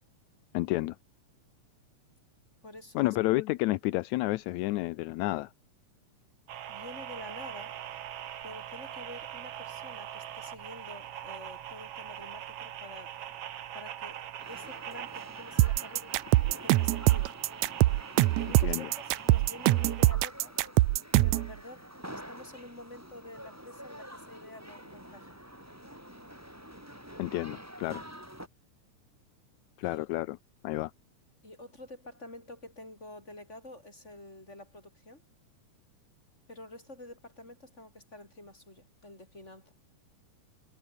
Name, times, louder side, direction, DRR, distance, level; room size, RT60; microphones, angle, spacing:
voice 1, 0.5-1.0 2.9-5.5 18.6-18.9 27.2-28.0 29.8-30.4 30.6-30.9, left 19 dB, 80° left, 1.8 m, -30 dB
voice 2, 2.6-3.2 6.7-7.8 8.4-13.2 13.7-16.2 16.6-17.3 18.2-20.6 21.2-25.4 29.8-30.0 31.4-35.2 36.5-39.7, left 1 dB, 20° left, 8.3 m, -48 dB
sound 1, 6.5-20.1, right 11 dB, 60° right, 1.8 m, -42 dB
sound 2, 14.4-28.5, equal, 5° right, 4.9 m, -48 dB
sound 3, 15.6-21.5, right 17 dB, 80° right, 1.7 m, -23 dB
omnidirectional pair, 3.7 m